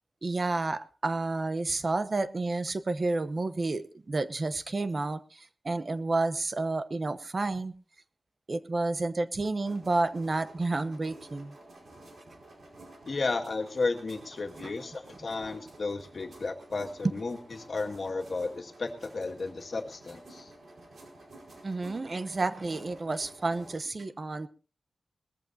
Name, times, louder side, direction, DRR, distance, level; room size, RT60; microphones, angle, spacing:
voice 1, 0.2-7.7 8.5-11.5 21.6-24.5, right 3 dB, 45° right, 12 dB, 0.9 m, -30 dB
sound 1, 9.6-23.8, right 1 dB, 80° right, 4.8 m, -51 dB
voice 2, 13.1-20.5, left 3 dB, 60° left, 4 dB, 2.0 m, -33 dB
20.0 x 14.5 x 2.8 m, 0.35 s
wide cardioid pair, 125°, 0 cm